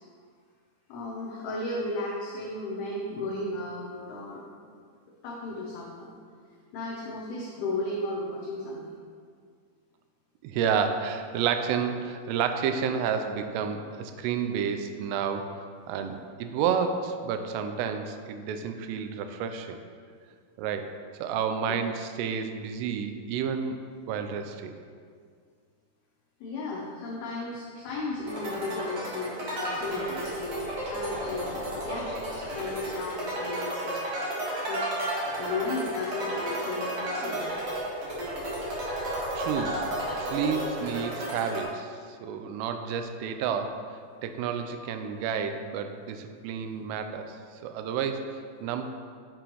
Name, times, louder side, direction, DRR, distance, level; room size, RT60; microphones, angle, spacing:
voice 1, 0.9-4.6 5.2-6.1 6.7-8.9 21.7-21.8 26.4-34.0 34.7-34.9 35.4-37.5, left 2 dB, 85° left, -4 dB, 2.2 m, -35 dB
voice 2, 10.4-15.5 15.9-19.8 20.6-20.9 21.2-23.8 24.1-24.7 39.3-39.9 40.2-47.4 47.6-48.9, right 7 dB, 90° right, 7 dB, 3.1 m, -30 dB
sound 1, 28.3-41.6, right 1 dB, 65° right, 1.5 m, -33 dB
8.8 x 6.8 x 3.0 m, 2.1 s
omnidirectional pair, 5.7 m